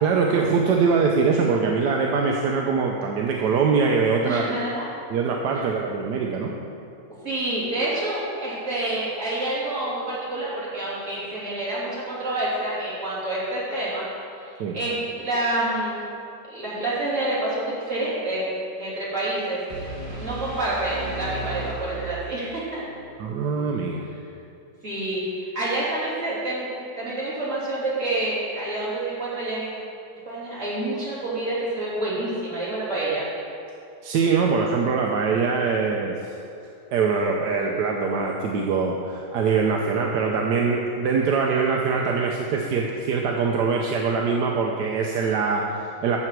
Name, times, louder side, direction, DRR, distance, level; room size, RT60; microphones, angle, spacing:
voice 1, 0.0-4.5 5.1-6.5 14.6-14.8 23.2-24.0 34.0-36.3 36.9-46.2, right 5 dB, 80° right, 0 dB, 1.3 m, -23 dB
voice 2, 4.2-4.9 7.1-14.0 14.7-16.0 16.5-18.4 18.8-19.6 20.2-22.8 24.8-26.7 27.0-29.7 30.2-33.2, right 2 dB, 45° right, -9 dB, 3.4 m, -28 dB
sound 1, 19.7-22.7, right 2 dB, 20° right, 2.2 m, -34 dB
11.5 x 7.7 x 4.6 m, 2.6 s
omnidirectional pair, 1.8 m